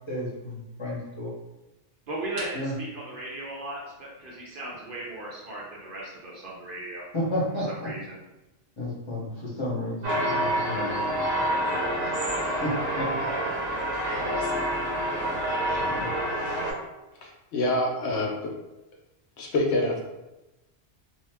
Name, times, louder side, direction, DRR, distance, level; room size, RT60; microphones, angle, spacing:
voice 1, 0.1-1.3 2.5-2.7 7.1-7.9 8.8-11.2 12.0-12.2 12.6-13.3 14.1-14.4 15.9-16.1, left 1 dB, 25° left, -6 dB, 0.8 m, -32 dB
voice 2, 2.1-7.0 7.8-8.2, right 2 dB, 55° right, -4 dB, 0.7 m, -37 dB
sound 1, 10.0-16.7, right 1 dB, 85° right, 1.1 m, -27 dB
voice 3, 17.1-18.3 19.4-20.1, left 2 dB, 75° left, -1 dB, 0.9 m, -26 dB
2.8 x 2.1 x 3.3 m, 1.0 s
omnidirectional pair, 1.2 m